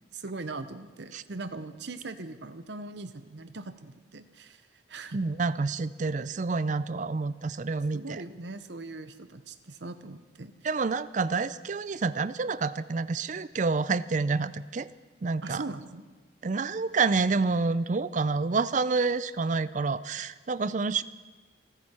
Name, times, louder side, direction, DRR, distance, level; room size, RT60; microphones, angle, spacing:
voice 1, 0.1-4.6 4.9-5.2 7.9-10.5 15.4-16.0, right 3 dB, 60° right, 11 dB, 0.9 m, -40 dB
voice 2, 5.1-8.2 10.6-14.9 15.2-15.6 16.4-21.0, right 4 dB, 40° right, 16 dB, 0.4 m, -28 dB
28.0 x 10.0 x 4.4 m, 1.3 s
head